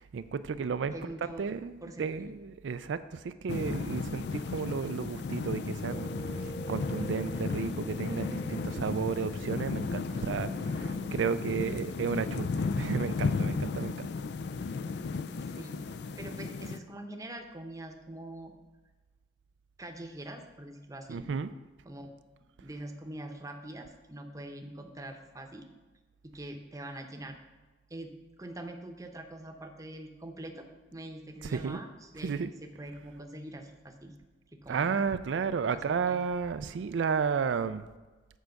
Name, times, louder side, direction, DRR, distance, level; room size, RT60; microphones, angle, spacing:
voice 1, 0.0-0.9 1.2-12.5 12.8-14.1 21.1-21.5 31.4-31.8 32.2-32.5 34.7-37.9, right 6 dB, 85° right, 11 dB, 0.4 m, -33 dB
voice 2, 0.9-1.5 1.8-2.3 15.3-15.8 16.2-18.5 19.8-21.2 21.8-22.1 22.6-25.7 26.2-27.4 27.9-34.1 34.5-35.2 35.7-36.3, right 1 dB, 20° right, 5 dB, 0.8 m, -44 dB
sound 1, 3.5-16.8, left 4 dB, 65° left, 0.4 m, -34 dB
sound 2, 5.8-12.5, equal, 30° left, 1.0 m, -43 dB
8.3 x 4.6 x 6.5 m, 1.2 s
head